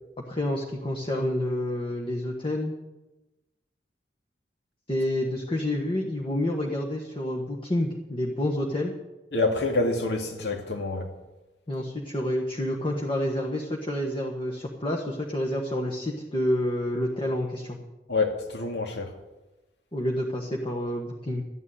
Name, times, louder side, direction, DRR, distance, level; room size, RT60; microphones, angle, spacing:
voice 1, 0.3-2.7 4.9-8.9 11.7-17.8 19.9-21.4, left 1 dB, 30° left, 1.4 m, -28 dB
voice 2, 9.3-11.1 18.1-19.1, left 3 dB, 75° left, 2.5 m, -27 dB
12.5 x 9.4 x 9.1 m
head